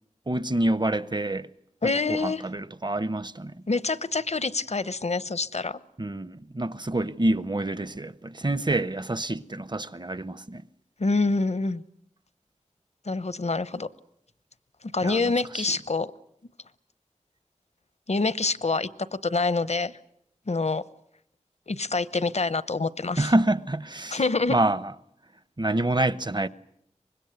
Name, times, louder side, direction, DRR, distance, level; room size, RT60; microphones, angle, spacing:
voice 1, 0.3-1.5 1.8-3.6 6.0-10.6 15.0-15.7 23.2-24.2 24.5-24.9 25.6-26.5, right 1 dB, 40° right, 0.9 m, -27 dB
voice 2, 1.8-2.4 3.7-5.8 11.0-11.8 13.1-13.9 14.9-16.1 18.1-18.9 19.2-19.9 20.5-20.8 21.7-23.3 24.1-24.6, left 3 dB, 65° left, 0.9 m, -26 dB
24.5 x 21.0 x 8.0 m
wide cardioid pair, 50°, 12 cm